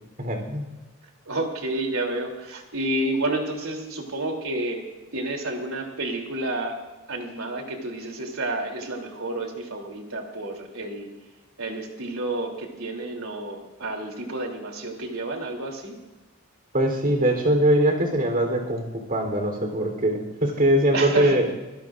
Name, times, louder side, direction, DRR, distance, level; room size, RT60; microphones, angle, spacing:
voice 1, 0.2-0.7 16.7-21.5, right 1 dB, 45° right, 2 dB, 3.6 m, -22 dB
voice 2, 1.3-4.8 5.1-6.7 7.1-11.1 11.6-16.0 20.9-21.4, right 2 dB, 80° right, 1 dB, 3.2 m, -30 dB
25.5 x 16.5 x 2.6 m, 1.1 s
head